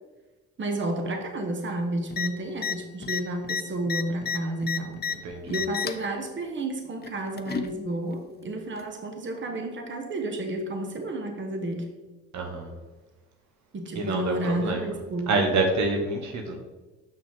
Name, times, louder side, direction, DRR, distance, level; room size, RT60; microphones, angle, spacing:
voice 1, 0.6-5.0 5.5-11.9 13.7-15.5, right 1 dB, 40° right, 4 dB, 1.3 m, -31 dB
sound 1, 2.1-2.3 2.6-2.8 3.0-5.2 5.5-6.1 7.0-7.7 8.8-8.9, left 7 dB, 30° left, 0.6 m, -30 dB
voice 2, 12.3-12.7 13.9-14.9 15.3-16.6, right 3 dB, 65° right, 3 dB, 1.3 m, -27 dB
6.9 x 6.0 x 3.7 m, 1.2 s
supercardioid pair, 65°, 31 cm